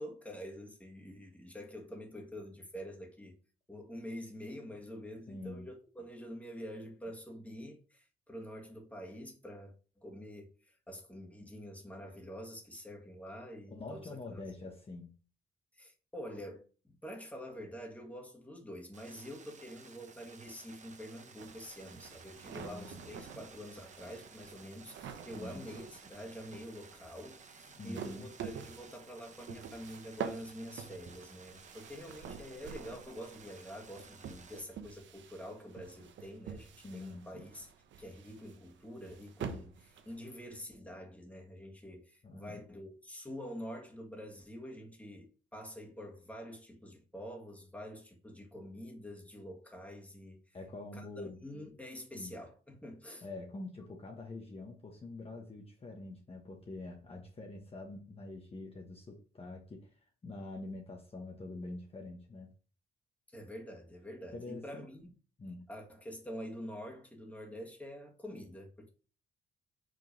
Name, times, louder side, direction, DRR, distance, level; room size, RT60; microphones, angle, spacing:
voice 1, 0.0-3.4 3.7-14.4 15.7-37.7 38.0-50.4 50.9-51.0 51.4-53.3 63.3-65.1 65.7-68.9, equal, 5° left, 1.8 m, -47 dB
voice 2, 5.3-5.7 13.7-15.1 22.4-23.0 25.3-25.7 27.8-28.3 36.8-37.4 42.2-42.6 50.5-51.4 52.1-52.4 53.2-62.5 64.3-64.9 65.4-65.7, left 2 dB, 30° left, 1.2 m, -45 dB
sound 1, 18.9-34.6, right 5 dB, 35° right, 1.0 m, -56 dB
sound 2, 21.4-40.6, right 7 dB, 70° right, 0.9 m, -48 dB
5.2 x 3.8 x 5.2 m
cardioid pair, 90°, 20 cm